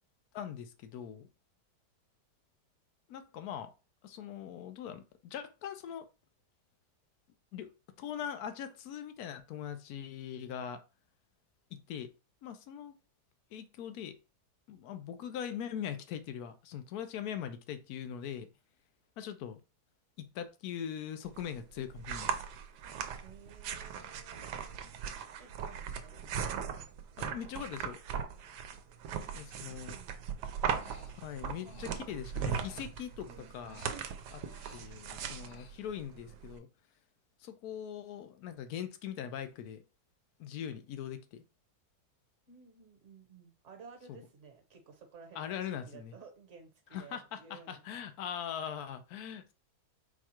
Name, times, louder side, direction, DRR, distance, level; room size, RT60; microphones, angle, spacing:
voice 1, 0.3-1.3 3.1-3.7 4.0-6.1 7.5-7.7 8.0-10.8 11.7-12.1 12.4-12.9 13.5-14.1 14.7-18.5 19.2-19.6 20.2-22.3 27.2-28.0 29.3-29.9 31.0-33.9 34.3-34.4 34.7-36.7 37.4-39.8 40.4-41.4 44.1-44.2 45.3-46.1 46.9-49.5, left 9 dB, 70° left, 1.1 m, -41 dB
sound 1, 21.3-36.6, right 7 dB, 85° right, 1.2 m, -39 dB
voice 2, 23.2-24.9 25.4-26.3 29.7-30.4 42.5-47.8, right 5 dB, 50° right, 1.3 m, -55 dB
Human voice, 30.5-33.3 33.6-36.1, left 6 dB, 85° left, 0.5 m, -57 dB
4.7 x 2.3 x 4.4 m
omnidirectional pair, 1.7 m